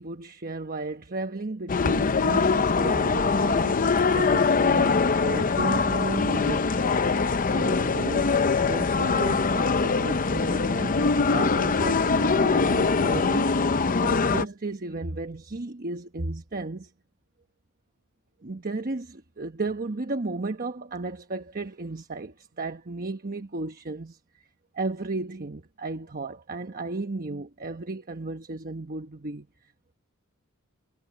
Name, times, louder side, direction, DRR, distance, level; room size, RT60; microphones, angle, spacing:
voice 1, 0.0-6.7 7.5-16.9 18.4-24.5 24.7-29.5, right 2 dB, 40° right, 1.1 m, -34 dB
sound 1, 1.7-14.4, left 4 dB, 40° left, 0.7 m, -23 dB
head